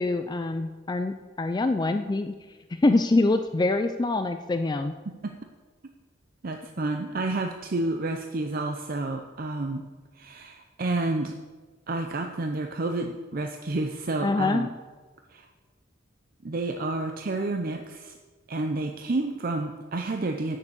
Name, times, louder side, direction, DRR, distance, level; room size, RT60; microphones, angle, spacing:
voice 1, 0.0-2.3 2.7-5.0 14.2-14.7, left 2 dB, 20° left, 8 dB, 0.3 m, -25 dB
voice 2, 6.4-9.8 10.2-11.3 11.9-14.7 15.3-15.5 16.4-18.2 18.5-20.6, right 2 dB, 50° right, 4 dB, 0.6 m, -30 dB
9.6 x 6.8 x 7.0 m, 1.4 s
head